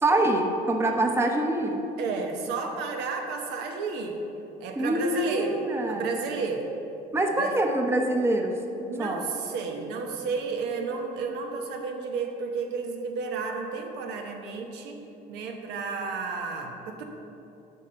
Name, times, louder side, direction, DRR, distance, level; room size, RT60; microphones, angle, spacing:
voice 1, 0.0-1.8 4.8-6.1 7.1-8.5 9.0-9.2, right 1 dB, 15° right, 3 dB, 0.8 m, -25 dB
voice 2, 2.0-4.2 4.6-6.7 7.3-7.6 8.8-15.0 15.3-17.0, right 4 dB, 90° right, 3 dB, 1.1 m, -32 dB
8.0 x 5.5 x 6.9 m, 2.9 s
cardioid pair, 110°, 17 cm